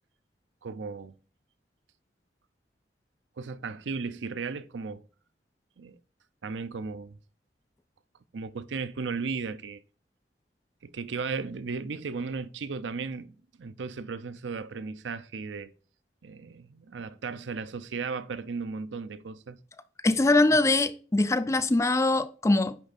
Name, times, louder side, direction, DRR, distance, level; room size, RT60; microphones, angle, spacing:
voice 1, 0.6-1.1 3.4-5.0 5.8-6.0 6.4-7.2 8.3-9.8 10.8-15.7 16.2-19.6 20.5-20.6, right 4 dB, 90° right, 0.6 m, -35 dB
voice 2, 20.0-22.8, left 2 dB, 15° left, 0.4 m, -23 dB
10.0 x 3.5 x 4.1 m
head